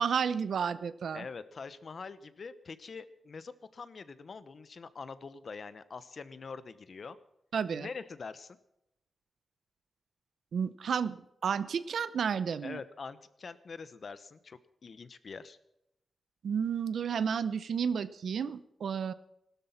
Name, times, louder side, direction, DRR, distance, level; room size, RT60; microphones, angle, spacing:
voice 1, 0.0-1.2 7.5-7.9 10.5-12.8 16.4-19.1, right 7 dB, 80° right, 15 dB, 0.8 m, -31 dB
voice 2, 1.1-7.2 7.7-8.6 12.6-15.6, left 4 dB, 55° left, 14 dB, 1.0 m, -44 dB
17.0 x 12.5 x 5.9 m, 0.83 s
wide cardioid pair, 95°, 0 cm